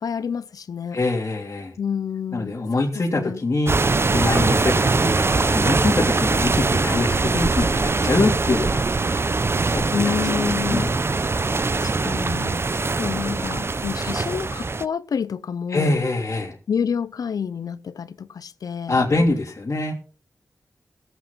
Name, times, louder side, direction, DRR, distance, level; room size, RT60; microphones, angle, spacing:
voice 1, 0.0-1.0 1.8-2.5 2.9-3.4 9.9-10.9 11.6-16.0 16.7-19.0, left 7 dB, 85° left, 0.6 m, -28 dB
voice 2, 0.9-1.7 2.3-9.3 9.7-10.9 15.7-16.6 18.9-19.9, left 2 dB, 50° left, 3.2 m, -24 dB
sound 1, 3.7-14.9, right 3 dB, 40° right, 0.7 m, -22 dB
17.0 x 8.2 x 5.7 m
cardioid pair, 50°, 6 cm